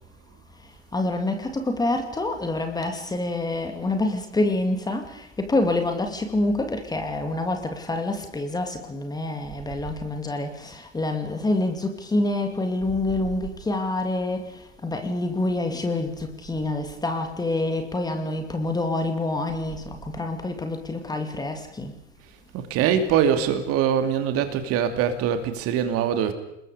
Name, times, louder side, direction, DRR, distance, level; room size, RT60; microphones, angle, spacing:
voice 1, 0.9-21.9, left 2 dB, 10° left, 5 dB, 2.5 m, -27 dB
voice 2, 22.5-26.3, right 8 dB, 40° right, 8 dB, 2.7 m, -23 dB
30.0 x 20.5 x 5.0 m, 0.83 s
figure-of-eight pair, 95°, 37 cm